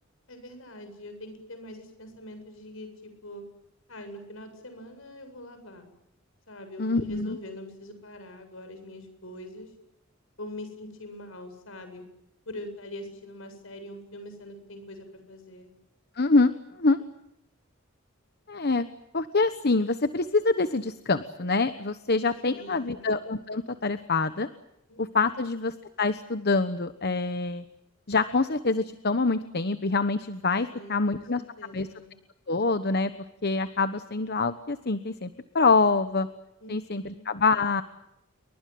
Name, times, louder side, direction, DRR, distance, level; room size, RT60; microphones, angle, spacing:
voice 1, 0.3-3.4 3.9-5.9 6.5-9.7 10.4-12.0 12.4-15.7 22.5-23.1 24.9-25.5 30.7-32.1 36.6-37.3, left 1 dB, 70° left, 8 dB, 7.9 m, -43 dB
voice 2, 6.8-7.4 16.2-16.5 16.8-17.0 18.5-18.9 19.1-24.5 25.0-25.7 26.0-27.6 28.1-31.4 31.7-31.9 32.5-33.1 33.4-35.3 35.5-36.3 36.7-37.8, left 3 dB, 50° left, 11 dB, 1.2 m, -25 dB
29.5 x 24.0 x 7.8 m, 0.86 s
head